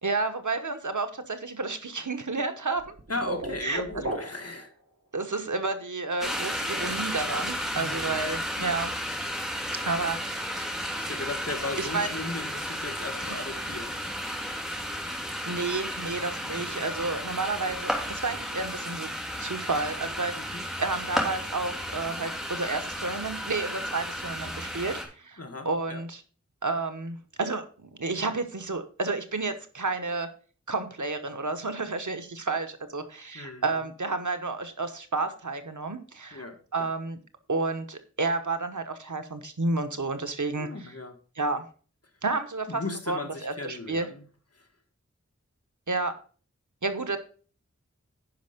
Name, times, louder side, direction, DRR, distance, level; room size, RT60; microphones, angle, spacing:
voice 1, 0.0-2.9 3.6-3.8 5.1-8.9 9.8-10.5 11.8-12.1 13.3-13.4 15.5-19.1 19.4-26.2 26.6-30.3 30.7-36.5 36.7-37.2 37.5-40.9 41.4-41.7 42.2-44.1 45.9-46.1 46.8-47.2, right 3 dB, 85° right, 8 dB, 1.1 m, -31 dB
sound 1, 2.8-4.7, right 2 dB, 60° right, 1.7 m, -36 dB
voice 2, 3.1-4.7 7.7-8.2 11.0-14.4 20.4-20.6 25.4-26.0 33.3-33.8 36.3-36.9 40.6-41.1 42.7-44.2 44.5-44.6, left 2 dB, 55° left, 5 dB, 1.7 m, -37 dB
sound 2, 6.2-25.0, equal, ahead, 2.9 m, -33 dB
10.5 x 5.4 x 5.1 m, 0.40 s
wide cardioid pair, 40°, 29 cm